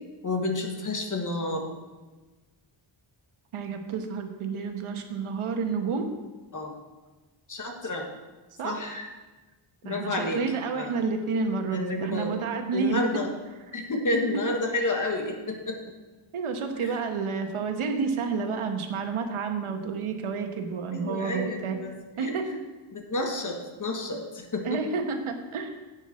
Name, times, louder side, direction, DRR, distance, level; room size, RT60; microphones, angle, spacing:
voice 1, 0.2-1.7 6.5-6.8 7.5-8.1 8.6-9.1 9.8-10.4 10.7-10.9 11.7-12.4 12.7-13.3 13.7-15.8 16.7-17.0 20.9-22.3 22.9-24.8, left 2 dB, 40° left, 3 dB, 1.5 m, -30 dB
voice 2, 3.5-6.1 8.6-8.9 9.8-13.2 14.3-14.4 16.3-21.8 22.2-22.6 24.6-25.7, right 5 dB, 80° right, 5 dB, 1.2 m, -30 dB
10.5 x 8.1 x 4.3 m, 1.2 s
wide cardioid pair, 120°, 49 cm